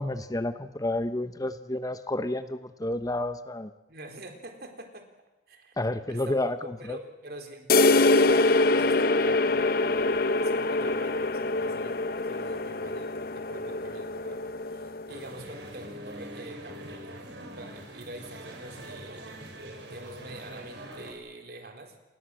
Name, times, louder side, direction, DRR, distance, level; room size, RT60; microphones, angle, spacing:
voice 1, 0.0-3.7 5.8-7.0, left 1 dB, 20° left, 11 dB, 0.9 m, -30 dB
voice 2, 3.9-5.1 5.5-5.7 6.1-12.0 12.2-19.4 19.9-22.0, right 1 dB, 60° right, 5 dB, 3.9 m, -45 dB
sound 1, 7.7-15.2, left 2 dB, 55° left, 0.9 m, -24 dB
sound 2, 15.1-21.1, right 1 dB, 80° right, 5.3 m, -43 dB
29.0 x 20.0 x 7.6 m, 1.1 s
head